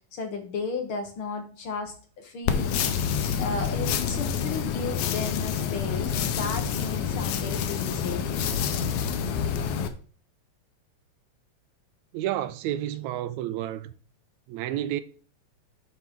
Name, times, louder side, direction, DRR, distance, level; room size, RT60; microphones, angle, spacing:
voice 1, 0.1-3.0 3.4-8.4, left 4 dB, 55° left, 1.7 m, -34 dB
sound 1, 2.5-9.9, left 7 dB, 80° left, 2.2 m, -27 dB
voice 2, 12.1-13.9 14.5-15.0, right 12 dB, 80° right, 1.9 m, -30 dB
10.5 x 4.4 x 3.6 m
omnidirectional pair, 3.3 m